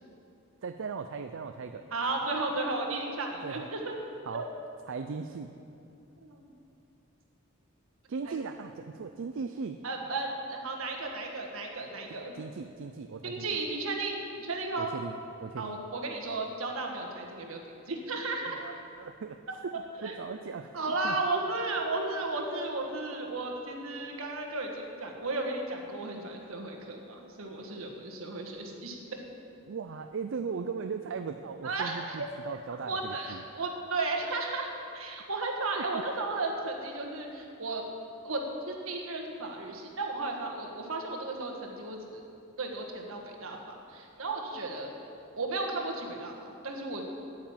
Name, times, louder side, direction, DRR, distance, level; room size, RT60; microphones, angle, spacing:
voice 1, 0.6-1.9 3.4-3.7 4.3-4.5 4.9-5.5 8.1-9.8 12.1-13.6 14.8-15.8 18.5-19.4 19.6-21.2 29.7-33.4 35.8-36.0, right 5 dB, 65° right, 7 dB, 0.4 m, -38 dB
voice 2, 1.9-3.9 4.3-4.4 6.2-6.5 8.2-8.4 9.8-12.3 13.2-14.9 15.6-18.6 19.5-19.6 20.0-20.1 20.7-29.2 31.6-32.0 32.9-37.8 38.2-38.4 38.7-42.2 42.6-43.6 43.9-44.9 45.4-47.0, right 3 dB, 80° right, 1 dB, 1.6 m, -34 dB
9.6 x 9.0 x 7.2 m, 2.6 s
head